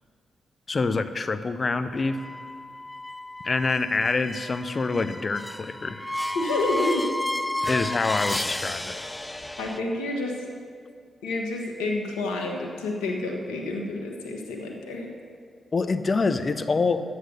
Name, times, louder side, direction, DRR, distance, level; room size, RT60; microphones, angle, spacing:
voice 1, 0.7-2.2 3.4-6.1 7.6-9.0 15.7-17.0, left 4 dB, 45° left, 11 dB, 0.7 m, -26 dB
sound 1, 2.1-9.8, left 1 dB, 15° left, 0.5 m, -32 dB
voice 2, 6.3-7.0 9.6-10.4 11.2-15.1, left 2 dB, 85° left, 0 dB, 1.2 m, -29 dB
11.0 x 8.1 x 6.6 m, 2.2 s
hypercardioid pair, 40°, 0 cm